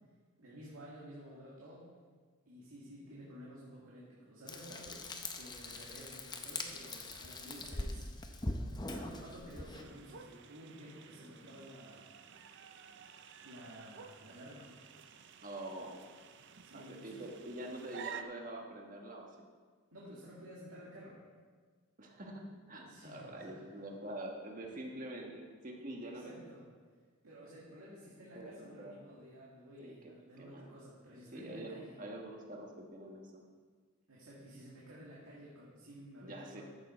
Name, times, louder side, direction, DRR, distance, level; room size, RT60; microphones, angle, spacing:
voice 1, 0.4-1.8 2.5-5.0 5.3-8.1 8.9-12.1 13.4-14.7 16.6-17.2 19.9-21.2 22.8-23.6 26.0-26.6 27.2-32.0 34.1-36.6, equal, 80° right, -6 dB, 2.1 m, -52 dB
Frying (food), 4.5-9.8, left 2 dB, 20° left, 0.6 m, -42 dB
sound 1, 9.7-18.2, right 7 dB, 55° right, 0.5 m, -52 dB
voice 2, 15.4-16.0 16.7-19.5 22.0-26.4 28.3-29.0 29.8-30.1 30.4-30.7 31.3-33.4 36.2-36.6, right 1 dB, 40° right, 0 dB, 1.4 m, -45 dB
14.0 x 6.9 x 4.4 m, 1.5 s
head